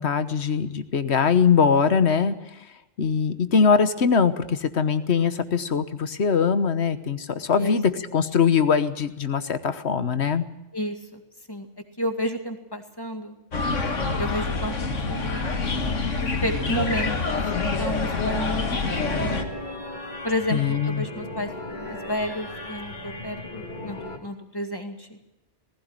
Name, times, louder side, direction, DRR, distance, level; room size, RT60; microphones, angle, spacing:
voice 1, 0.0-2.4 3.0-10.4 20.5-21.1, left 6 dB, 65° left, 12 dB, 1.4 m, -22 dB
voice 2, 10.7-11.2 11.5-11.7 12.0-13.4 14.2-14.7 15.1-15.5 16.2-17.4 17.8-19.5 20.2-25.2, equal, 20° left, 5 dB, 2.2 m, -31 dB
sound 1, 13.5-19.4, left 3 dB, 90° left, 2.2 m, -26 dB
sound 2, 19.0-24.2, left 2 dB, 40° left, 2.6 m, -37 dB
18.5 x 16.0 x 9.0 m, 0.95 s
omnidirectional pair, 1.2 m